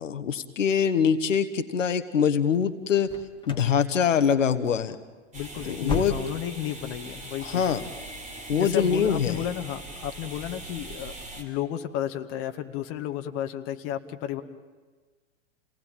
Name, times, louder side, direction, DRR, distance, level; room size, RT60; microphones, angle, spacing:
voice 1, 0.0-3.1 3.5-4.9 5.7-6.1 7.4-7.8 8.5-9.4, left 7 dB, 75° left, 9 dB, 1.6 m, -24 dB
sound 1, 3.0-3.8 4.0-4.5 4.8-4.9 5.4-6.6 6.9-7.0 7.5-7.7, left 2 dB, 10° left, 2.7 m, -35 dB
voice 2, 5.3-7.7 8.5-14.4, left 11 dB, 35° left, 6 dB, 1.8 m, -33 dB
sound 2, 5.3-11.4, right 2 dB, 20° right, 4.2 m, -41 dB
29.5 x 19.0 x 9.2 m, 1.4 s
hypercardioid pair, 110°, 39 cm